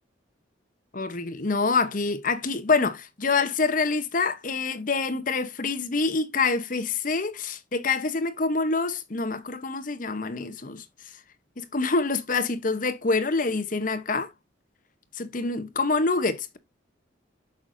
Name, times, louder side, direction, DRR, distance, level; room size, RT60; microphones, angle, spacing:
voice 1, 0.9-10.8 11.6-14.3 15.1-16.6, left 4 dB, 45° left, 0.9 m, -26 dB
8.0 x 6.4 x 2.6 m
head